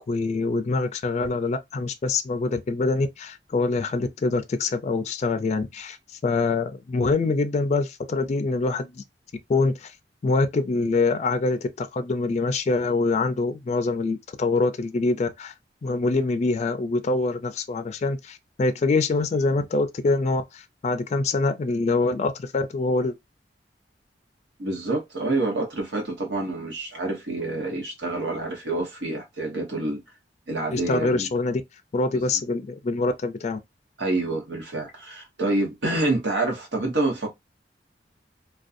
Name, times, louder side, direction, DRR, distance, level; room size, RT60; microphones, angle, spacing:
voice 1, 0.1-6.0 6.2-9.0 9.5-9.9 10.2-15.5 15.8-23.2 30.7-31.6 31.9-33.6, left 3 dB, 40° left, 0.3 m, -25 dB
voice 2, 24.6-30.0 30.5-31.3 32.1-32.2 34.0-37.3, right 2 dB, 85° right, 1.0 m, -27 dB
2.5 x 2.2 x 2.5 m
head